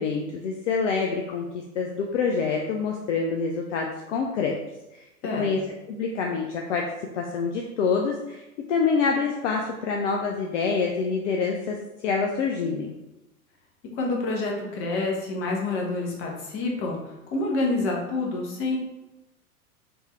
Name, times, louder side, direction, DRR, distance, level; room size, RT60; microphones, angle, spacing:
voice 1, 0.0-4.6 4.9-5.0 5.4-5.6 5.9-6.8 7.1-8.4 8.7-11.8 12.0-12.9, left 5 dB, 55° left, 1 dB, 0.6 m, -26 dB
voice 2, 14.0-18.8, left 2 dB, 30° left, -1 dB, 1.1 m, -28 dB
4.5 x 2.7 x 3.2 m, 0.96 s
figure-of-eight pair, 100°, 44 cm